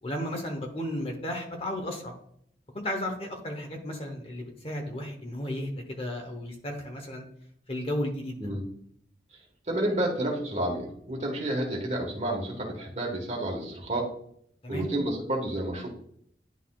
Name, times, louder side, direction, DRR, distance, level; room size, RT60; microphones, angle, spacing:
voice 1, 0.0-2.2 2.7-7.3 7.7-8.4 14.6-14.9, left 1 dB, 35° left, 3 dB, 1.1 m, -34 dB
voice 2, 9.7-14.1 14.7-15.9, right 1 dB, 40° right, 0 dB, 1.6 m, -30 dB
10.5 x 4.1 x 2.4 m, 0.66 s
head